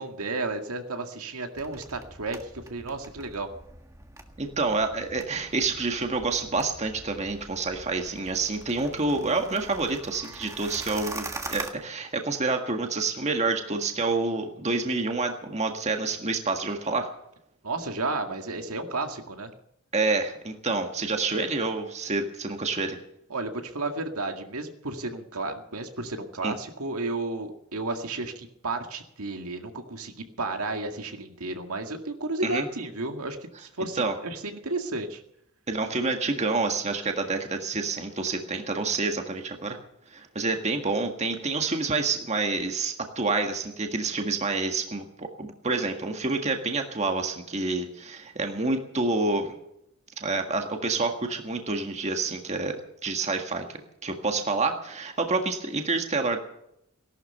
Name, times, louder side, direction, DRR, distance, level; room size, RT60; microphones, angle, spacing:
voice 1, 0.0-3.5 17.6-19.5 23.3-35.2, right 2 dB, 75° right, 5 dB, 2.0 m, -33 dB
sound 1, 1.5-11.7, right 2 dB, 15° right, 1.6 m, -43 dB
voice 2, 4.4-17.1 19.9-23.0 26.4-26.5 32.4-32.7 34.0-34.1 35.7-39.8 40.1-49.5 50.2-53.6 54.0-56.4, right 3 dB, 30° right, 5 dB, 1.7 m, -28 dB
17.5 x 12.0 x 6.8 m, 0.77 s
head